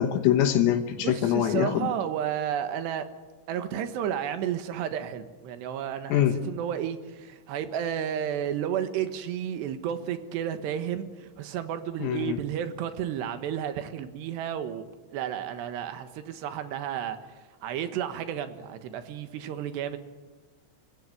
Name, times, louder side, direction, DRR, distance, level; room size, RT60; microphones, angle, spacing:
voice 1, 0.0-1.9 6.1-6.4 12.0-12.4, left 11 dB, 80° left, 5 dB, 3.8 m, -24 dB
voice 2, 1.0-3.0 3.5-14.8 15.1-17.2 17.6-20.0, right 9 dB, 70° right, 9 dB, 3.2 m, -32 dB
26.5 x 16.0 x 9.5 m, 1.3 s
omnidirectional pair, 5.9 m